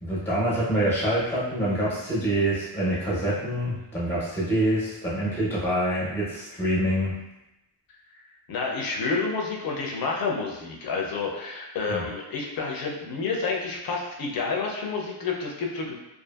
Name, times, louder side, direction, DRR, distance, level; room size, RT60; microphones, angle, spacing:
voice 1, 0.0-7.2 11.9-12.0, right 1 dB, 5° left, -7 dB, 0.5 m, -26 dB
voice 2, 8.5-16.0, left 4 dB, 50° left, -1 dB, 0.5 m, -29 dB
2.6 x 2.4 x 2.3 m, 0.94 s
wide cardioid pair, 170°, 45 cm